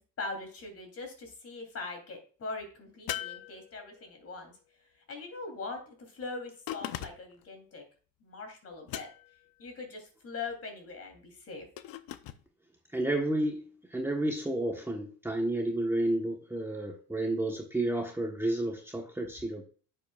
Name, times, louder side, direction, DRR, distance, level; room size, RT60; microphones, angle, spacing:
voice 1, 0.2-4.5 5.1-7.8 8.2-9.1 9.6-11.7, left 3 dB, 40° left, 4 dB, 3.3 m, -41 dB
sound 1, 3.1-4.2 6.7-7.4 8.9-9.5 11.8-12.4, left 13 dB, 75° left, 0.8 m, -39 dB
voice 2, 12.9-19.6, right 1 dB, 5° right, 0 dB, 1.2 m, -31 dB
10.0 x 7.6 x 2.4 m, 0.40 s
cardioid pair, 125°, 36 cm